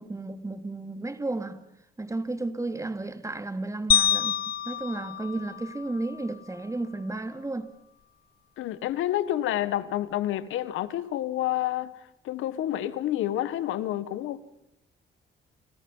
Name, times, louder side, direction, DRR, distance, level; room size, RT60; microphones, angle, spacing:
voice 1, 0.0-1.6 2.0-7.7, right 2 dB, 15° right, 2.7 m, -33 dB
sound 1, 3.9-6.3, left 9 dB, 50° left, 1.0 m, -27 dB
voice 2, 8.6-11.9 12.2-14.4, left 13 dB, 85° left, 1.6 m, -29 dB
30.0 x 28.0 x 5.6 m
cardioid pair, 90°, 20 cm